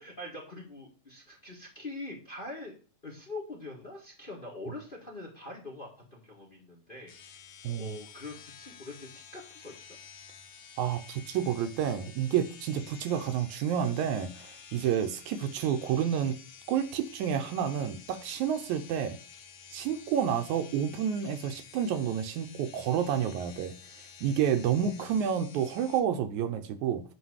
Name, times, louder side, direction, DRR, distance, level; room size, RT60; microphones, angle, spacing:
voice 1, 0.0-2.7 3.0-7.4 7.8-10.0 24.9-25.5, left 2 dB, 25° left, 1.2 m, -44 dB
sound 1, 7.1-26.0, left 7 dB, 60° left, 1.9 m, -51 dB
voice 2, 7.6-8.0 10.8-19.2 19.7-23.7 24.2-27.0, right 8 dB, 80° right, 2.1 m, -29 dB
9.5 x 3.3 x 6.4 m
omnidirectional pair, 3.5 m